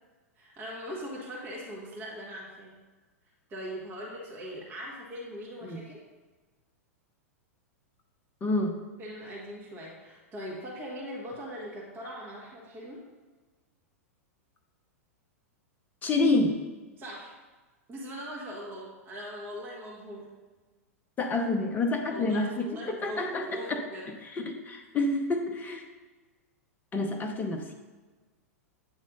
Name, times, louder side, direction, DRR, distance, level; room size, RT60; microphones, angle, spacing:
voice 1, 0.3-2.7 3.5-6.0 9.0-13.1 17.0-17.4 17.9-20.3 22.1-24.1, equal, 25° right, -4 dB, 1.6 m, -41 dB
voice 2, 8.4-8.8 16.0-16.6 21.2-23.8 24.3-25.8 26.9-27.7, left 2 dB, 20° left, 4 dB, 0.9 m, -28 dB
8.9 x 3.2 x 5.3 m, 1.3 s
figure-of-eight pair, 95°, 8 cm